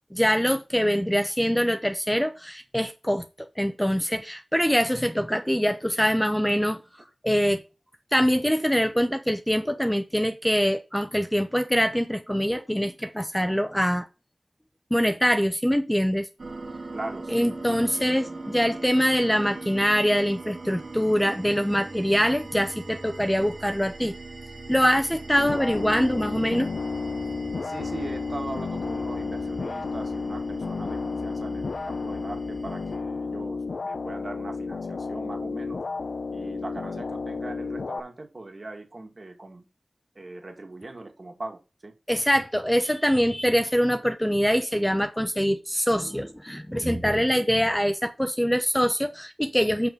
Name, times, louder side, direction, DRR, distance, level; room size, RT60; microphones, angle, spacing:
voice 1, 0.1-3.2 3.6-6.8 7.2-7.6 8.1-14.1 14.9-16.3 17.3-24.1 24.7-26.7 42.1-49.9, equal, 5° left, 0.8 m, -24 dB
sound 1, 16.4-33.0, right 2 dB, 70° right, 2.0 m, -41 dB
voice 2, 16.9-17.8 27.6-35.8 36.3-39.7 40.1-41.9, right 2 dB, 45° right, 2.3 m, -40 dB
sound 2, 25.4-38.0, left 4 dB, 90° left, 0.7 m, -32 dB
6.9 x 5.8 x 5.4 m
wide cardioid pair, 85°, 0 cm